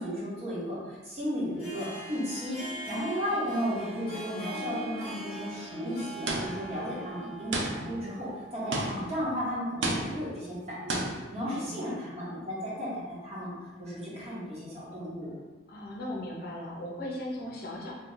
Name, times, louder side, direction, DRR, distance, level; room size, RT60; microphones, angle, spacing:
voice 1, 0.0-2.6 2.9-13.5 13.8-15.3, equal, 35° right, -8 dB, 1.2 m, -34 dB
Harp, 1.4-8.8, right 1 dB, 35° left, 1.1 m, -42 dB
voice 2, 3.5-4.3 11.5-12.1 15.7-17.9, left 1 dB, 55° left, -2 dB, 0.6 m, -39 dB
sound 1, 6.3-6.8 7.5-8.1 8.7-9.2 9.8-10.4 10.9-11.3, right 2 dB, 80° right, 0.5 m, -32 dB
2.8 x 2.3 x 3.8 m, 1.2 s
head